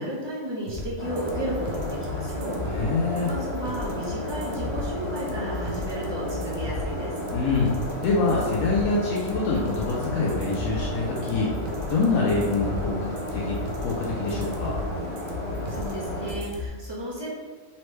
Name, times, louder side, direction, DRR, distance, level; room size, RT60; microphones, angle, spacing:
voice 1, 0.0-2.6 3.2-7.1 15.7-17.3, right 1 dB, 20° right, -6 dB, 1.0 m, -33 dB
sound 1, 0.7-16.7, left 2 dB, 90° right, 1.1 m, -35 dB
sound 2, 1.0-16.3, equal, 25° left, 1.3 m, -33 dB
voice 2, 2.7-3.3 7.3-7.8 8.0-11.5 11.9-14.8, left 3 dB, 85° left, -4 dB, 1.1 m, -25 dB
4.3 x 3.1 x 3.1 m, 1.4 s
omnidirectional pair, 1.4 m